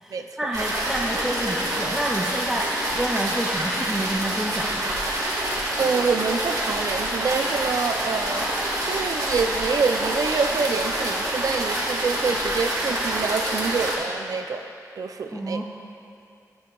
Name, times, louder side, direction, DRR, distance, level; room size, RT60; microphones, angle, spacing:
voice 1, 0.0-4.9 15.3-15.6, right 1 dB, 5° right, -2 dB, 0.4 m, -29 dB
sound 1, 0.5-14.0, right 1 dB, 80° right, 1.9 m, -27 dB
sound 2, 0.9-5.8, left 1 dB, 40° left, 0.9 m, -42 dB
Shout / Cheering, 4.9-13.8, left 1 dB, 90° left, 2.0 m, -43 dB
voice 2, 5.8-8.5 8.8-14.7 15.0-15.6, right 5 dB, 65° right, 6 dB, 0.4 m, -26 dB
13.5 x 8.6 x 2.3 m, 2.6 s
wide cardioid pair, 170°, 6 cm